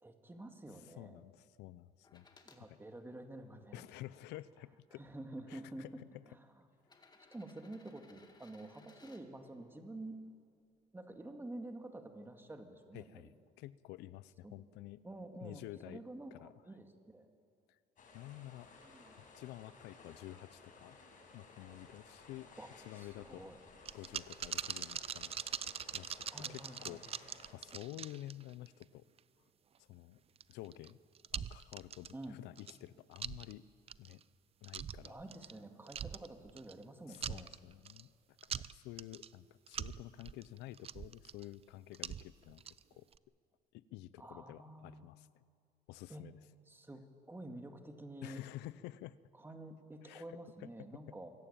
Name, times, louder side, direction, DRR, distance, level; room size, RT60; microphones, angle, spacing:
voice 1, 0.0-1.2 2.4-3.9 4.9-5.9 6.4-6.5 7.3-10.2 10.9-13.3 14.4-14.6 15.0-17.3 18.8-19.2 22.6-23.6 26.3-27.0 32.1-32.4 35.0-37.5 44.2-45.2 46.1-46.3 46.7-48.4 49.3-51.3, right 1 dB, 15° right, 5 dB, 2.2 m, -49 dB
voice 2, 0.8-2.3 2.7-2.8 3.7-5.0 5.5-5.9 12.9-13.3 13.6-15.0 15.4-16.0 16.3-16.5 17.7-17.8 18.1-18.7 19.2-21.0 21.3-22.5 22.8-23.5 23.9-25.3 25.6-26.2 26.5-29.1 29.8-30.2 30.5-31.0 31.3-33.7 34.0-34.2 34.6-35.2 37.0-38.1 38.4-42.6 42.9-43.1 43.7-45.3 45.9-46.4 48.2-49.2 50.0-51.0, left 15 dB, 90° left, 18 dB, 0.6 m, -50 dB
sound 1, 2.0-2.6 3.4-4.4 5.4-5.5 6.8-9.2 11.1-11.2, left 3 dB, 25° left, 2.1 m, -63 dB
sound 2, 18.0-27.5, left 3 dB, 50° left, 5.8 m, -58 dB
sound 3, 23.9-28.8 29.2-29.3 30.4-30.9 31.2-32.3 32.6-32.8 33.2-33.5 33.9-34.2 34.6-35.6 35.9-36.8 37.1-38.0 38.4-39.3 39.7-41.4 41.9-42.8 43.1-43.2, right 8 dB, 35° right, 0.5 m, -42 dB
24.0 x 16.0 x 8.8 m, 2.3 s
cardioid pair, 110°, 17 cm